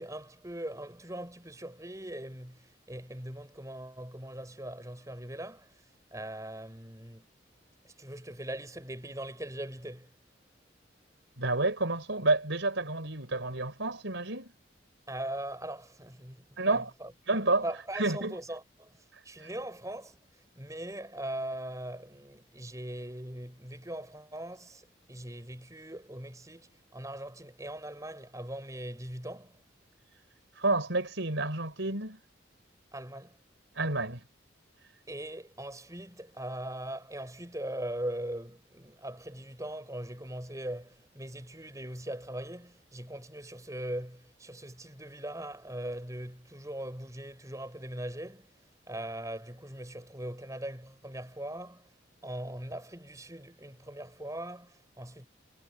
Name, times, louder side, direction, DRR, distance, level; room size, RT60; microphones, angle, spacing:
voice 1, 0.0-5.8 6.1-7.3 7.8-10.1 15.1-17.1 17.6-29.6 32.9-33.4 35.1-48.6 48.9-51.9 52.2-55.3, right 1 dB, 15° right, 5.8 m, -40 dB
voice 2, 11.4-14.5 16.6-16.9 17.3-17.7 18.0-18.3 19.4-19.5 30.6-32.2 33.8-34.2, right 2 dB, 70° right, 4.2 m, -29 dB
head